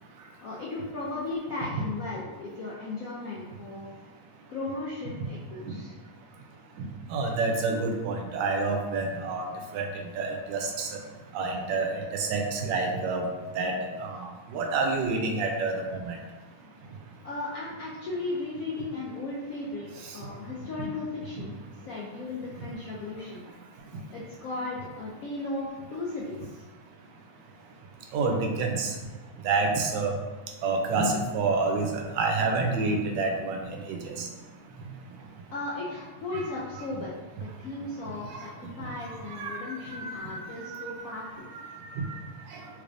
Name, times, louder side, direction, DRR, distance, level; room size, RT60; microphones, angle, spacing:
voice 1, 0.4-3.9 4.5-5.9 17.2-19.9 20.1-21.6 21.8-23.4 24.1-26.6 35.5-38.5 38.8-41.5, left 2 dB, 75° left, -6 dB, 0.8 m, -36 dB
voice 2, 7.1-9.5 9.7-9.8 10.2-10.9 11.3-13.2 13.6-13.7 14.0-16.2 28.1-28.9 29.4-30.1 30.6-33.6 33.9-34.0 36.3-36.4 39.3-39.6 39.9-40.3 41.9-42.1, right 3 dB, 80° right, 2 dB, 1.2 m, -28 dB
3.3 x 3.3 x 2.5 m, 1.2 s
omnidirectional pair, 2.0 m